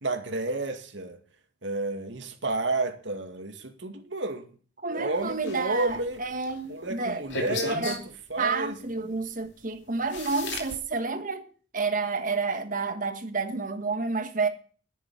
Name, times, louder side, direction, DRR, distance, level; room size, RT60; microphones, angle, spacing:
voice 1, 0.0-1.2 1.6-4.5 4.9-6.2 6.7-8.0 8.3-8.8 9.0-9.2, right 2 dB, 75° right, 2.1 m, -31 dB
voice 2, 4.8-7.2 7.7-8.0 8.4-11.5 11.7-14.5, right 4 dB, 45° right, 1.6 m, -30 dB
sound 1, 5.2-6.5 7.3-8.0 9.5-9.6 10.1-10.8, left 3 dB, 70° left, 2.8 m, -35 dB
11.0 x 7.1 x 8.5 m
head